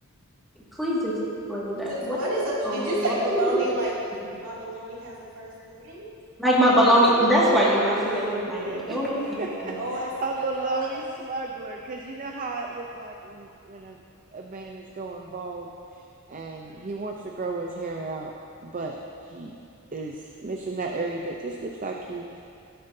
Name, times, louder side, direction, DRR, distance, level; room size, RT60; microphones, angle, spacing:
voice 1, 0.8-1.1 1.5-2.3 2.6-2.9 3.3-3.5 6.4-9.8, equal, ahead, -8 dB, 2.0 m, -22 dB
voice 2, 1.8-3.9 4.4-6.1 9.7-11.0, right 1 dB, 70° right, -6 dB, 2.6 m, -30 dB
voice 3, 7.9-14.0 14.3-15.7 16.3-18.3 18.6-19.0 19.2-19.6 19.9-22.4, right 3 dB, 35° right, 1 dB, 0.6 m, -34 dB
17.0 x 9.0 x 2.7 m, 2.6 s
head